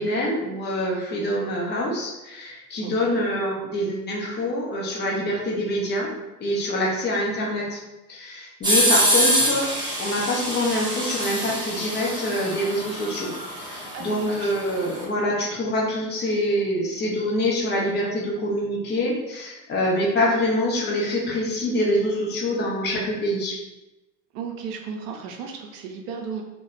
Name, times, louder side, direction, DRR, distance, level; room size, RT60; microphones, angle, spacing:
voice 1, 0.0-6.1 6.4-7.8 8.1-9.7 10.0-13.3 13.6-23.6, left 1 dB, 20° left, -3 dB, 0.7 m, -25 dB
voice 2, 2.8-3.2 13.9-14.5 24.3-26.4, right 6 dB, 55° right, 2 dB, 0.5 m, -34 dB
sound 1, 8.6-15.0, equal, 10° right, 0.8 m, -25 dB
2.3 x 2.1 x 3.1 m, 0.99 s
figure-of-eight pair, 65°, 48 cm